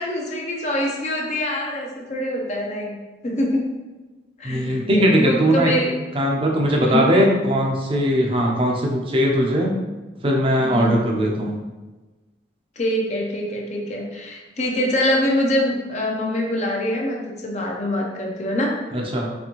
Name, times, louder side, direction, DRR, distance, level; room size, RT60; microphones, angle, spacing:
voice 1, 0.0-3.0 3.2-3.7 4.4-5.9 6.8-7.1 10.6-11.0 12.8-18.8, left 1 dB, 40° left, -1 dB, 0.6 m, -24 dB
voice 2, 4.4-5.7 6.1-9.7 10.2-11.6 18.9-19.3, equal, 30° right, 0 dB, 0.6 m, -19 dB
4.2 x 3.3 x 3.0 m, 1.2 s
head